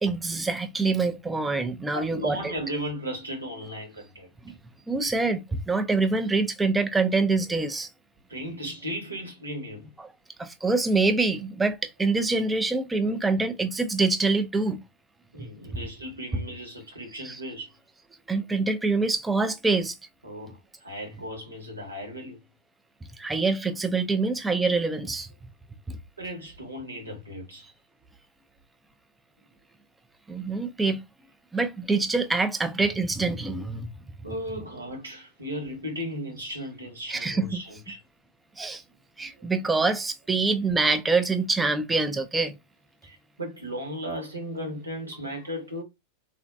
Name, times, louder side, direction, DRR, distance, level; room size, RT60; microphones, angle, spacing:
voice 1, 0.0-2.5 4.4-4.5 4.9-7.9 10.4-14.8 15.4-15.5 17.2-17.4 18.3-20.0 23.2-25.3 30.3-31.0 31.5-33.9 37.1-37.6 38.6-38.8 39.2-42.6, right 3 dB, 10° right, 0.4 m, -25 dB
voice 2, 1.9-4.3 8.3-9.9 15.3-17.7 20.2-22.4 26.2-27.7 34.2-38.0 39.3-39.5 43.0-45.8, equal, 80° right, 1.2 m, -36 dB
3.8 x 2.5 x 2.2 m
figure-of-eight pair, 90°, 0 cm